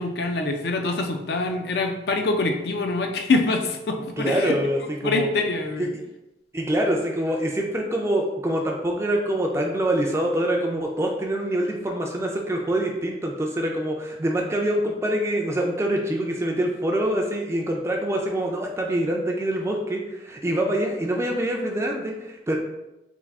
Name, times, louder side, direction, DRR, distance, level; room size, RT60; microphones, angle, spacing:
voice 1, 0.0-4.6 5.0-5.9, left 3 dB, 60° left, 4 dB, 0.4 m, -25 dB
voice 2, 4.2-5.3 5.8-5.9 6.5-22.5, right 1 dB, 15° right, 1 dB, 0.4 m, -25 dB
3.5 x 2.4 x 3.4 m, 0.95 s
head